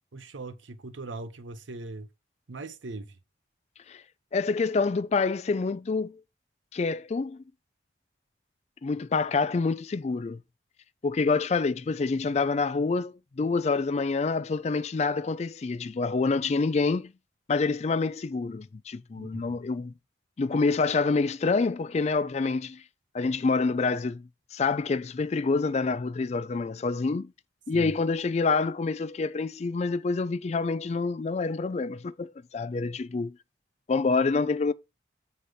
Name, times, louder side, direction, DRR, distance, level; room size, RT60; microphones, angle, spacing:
voice 1, 0.1-2.1 2.5-3.2 19.2-19.6 27.7-28.0, right 2 dB, 80° right, 0.7 m, -40 dB
voice 2, 4.3-6.2 6.7-7.4 8.8-10.4 11.0-17.1 17.5-19.9 20.4-22.8 23.1-27.3 27.7-33.3 33.9-34.7, left 4 dB, 35° left, 0.3 m, -27 dB
7.7 x 4.2 x 4.9 m
head